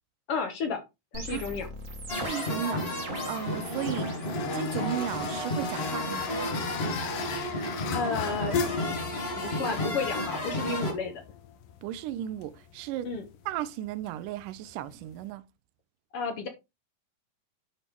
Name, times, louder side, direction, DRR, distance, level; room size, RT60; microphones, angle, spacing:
voice 1, 0.3-0.8 1.1-1.7 7.9-8.6 9.3-11.2 13.0-13.2 16.1-16.5, left 4 dB, 55° left, 1.8 m, -32 dB
sound 1, 1.1-4.4 4.7-5.2 6.2-10.4, right 2 dB, 45° right, 1.0 m, -44 dB
sound 2, 2.0-15.3, left 7 dB, 80° left, 2.5 m, -39 dB
sound 3, 2.1-10.9, left 1 dB, 25° left, 1.6 m, -32 dB
voice 2, 2.1-2.8 3.3-4.1 4.5-6.3 9.8-9.9 11.8-13.1 13.5-15.4, right 12 dB, 80° right, 2.2 m, -35 dB
10.5 x 4.5 x 3.5 m
omnidirectional pair, 3.9 m